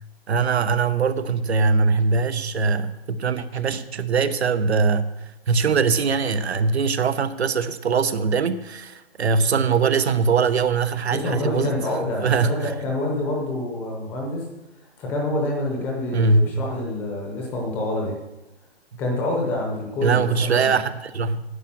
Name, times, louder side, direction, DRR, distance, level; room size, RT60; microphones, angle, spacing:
voice 1, 0.3-5.1 5.5-11.7 12.2-12.7 16.1-16.5 20.0-21.4, right 5 dB, 90° right, 13 dB, 1.0 m, -21 dB
voice 2, 11.1-14.4 15.0-18.2 19.0-20.8, left 1 dB, 5° left, -1 dB, 0.7 m, -27 dB
9.9 x 8.6 x 6.0 m, 1.1 s
hypercardioid pair, 170°, 31 cm